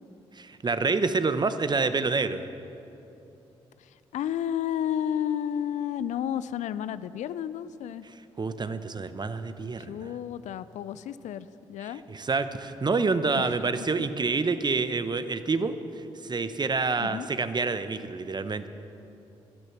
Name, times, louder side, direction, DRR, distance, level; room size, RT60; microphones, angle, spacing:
voice 1, 0.4-2.5 8.4-10.1 12.1-15.7 16.2-18.7, right 4 dB, 30° right, 11 dB, 0.9 m, -27 dB
voice 2, 3.8-8.0 9.8-12.0 13.4-13.6 14.0-14.1 17.0-17.3, left 10 dB, 65° left, 15 dB, 0.4 m, -32 dB
12.5 x 12.5 x 5.9 m, 2.9 s
hypercardioid pair, 40°, 14 cm